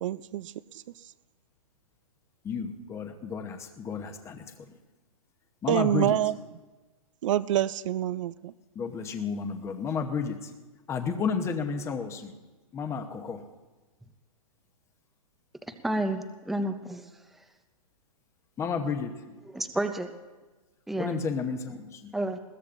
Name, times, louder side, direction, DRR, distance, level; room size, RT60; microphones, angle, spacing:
voice 1, 0.0-0.5 5.7-6.3 7.2-8.5, right 12 dB, 60° right, 0.5 m, -26 dB
voice 2, 2.4-4.8 5.6-6.2 8.7-10.5 10.9-12.3 12.7-13.4 18.6-19.1 21.0-22.1, left 5 dB, 15° left, 0.9 m, -32 dB
voice 3, 15.8-17.0 19.5-20.1 20.9-21.2 22.1-22.4, right 1 dB, ahead, 0.5 m, -30 dB
20.5 x 17.0 x 2.6 m
hypercardioid pair, 140°, 18 cm